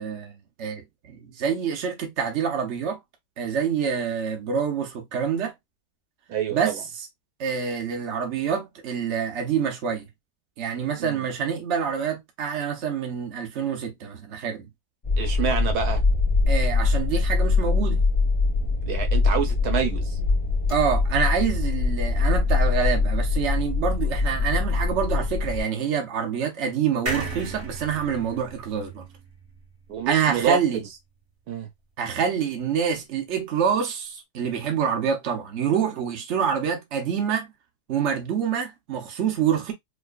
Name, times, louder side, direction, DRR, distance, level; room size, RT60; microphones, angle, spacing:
voice 1, 0.0-3.0 3.4-5.5 6.5-6.8 7.4-10.1 10.6-14.7 16.5-18.0 20.7-29.0 30.1-30.8 32.0-37.5 37.9-39.7, right 7 dB, 50° right, 1.1 m, -26 dB
voice 2, 6.3-6.8 11.0-11.2 15.2-16.0 18.8-20.2 29.9-30.9 31.5-31.7, right 7 dB, 80° right, 1.4 m, -27 dB
sound 1, 15.0-25.6, left 3 dB, 25° left, 0.8 m, -23 dB
sound 2, 27.1-30.5 30.9-31.0 31.2-31.3, right 2 dB, 35° right, 1.3 m, -35 dB
4.8 x 2.3 x 2.4 m
omnidirectional pair, 1.6 m